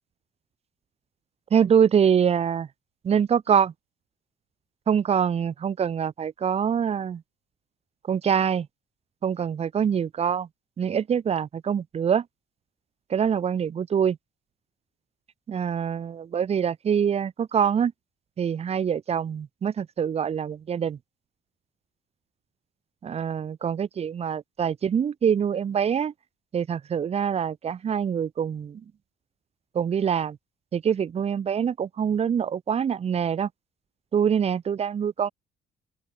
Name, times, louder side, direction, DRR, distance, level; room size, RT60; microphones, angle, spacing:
voice 1, 1.5-2.7 3.0-3.7 4.9-7.2 8.1-8.7 9.2-10.5 10.8-12.2 13.1-14.2 15.5-17.9 18.4-21.0 23.0-26.1 26.5-28.8 29.7-30.4 30.7-33.5 34.1-35.3, right 7 dB, 35° right, 1.2 m, -24 dB
open air
cardioid pair, 110°, 17 cm